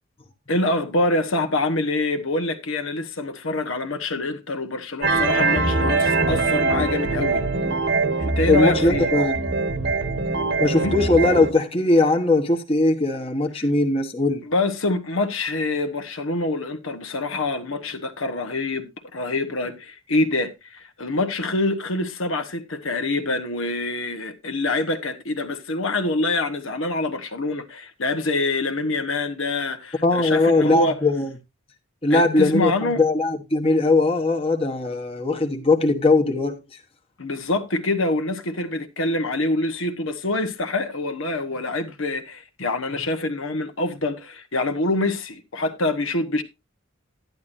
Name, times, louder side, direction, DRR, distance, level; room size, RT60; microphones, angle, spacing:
voice 1, 0.5-7.4 8.2-9.1 10.7-11.0 13.5-13.6 14.4-31.0 32.1-33.0 37.2-46.4, left 2 dB, 70° left, 1.3 m, -25 dB
sound 1, 5.0-11.5, right 3 dB, 55° right, 1.4 m, -22 dB
voice 2, 8.5-9.3 10.6-14.4 30.0-31.3 32.0-36.6, left 2 dB, 25° left, 1.2 m, -20 dB
11.5 x 10.5 x 2.6 m
head